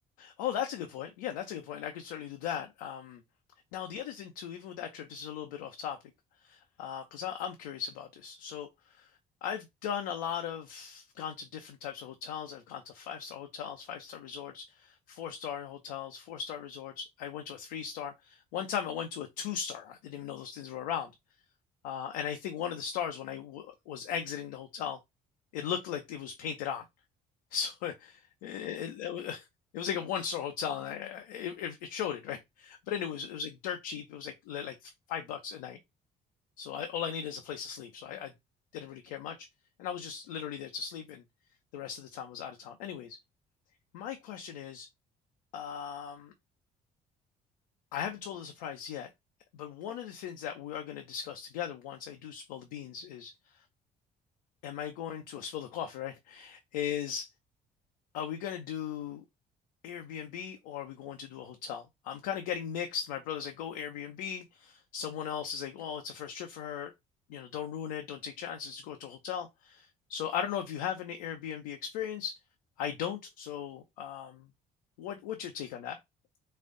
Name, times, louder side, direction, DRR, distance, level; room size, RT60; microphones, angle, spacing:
voice 1, 0.2-3.2 3.7-6.0 6.5-8.7 9.0-9.1 9.4-21.1 21.8-25.0 25.5-26.8 27.5-29.4 29.7-35.8 36.6-38.3 38.7-39.5 39.8-41.2 41.7-43.2 43.9-44.9 45.5-46.3 47.9-49.1 49.5-53.3 54.6-57.3 58.1-59.2 59.8-66.9 67.3-72.4 72.8-74.5 75.0-76.0, left 8 dB, 85° left, 0.7 m, -38 dB
4.3 x 2.5 x 3.8 m
hypercardioid pair, 60°, 20 cm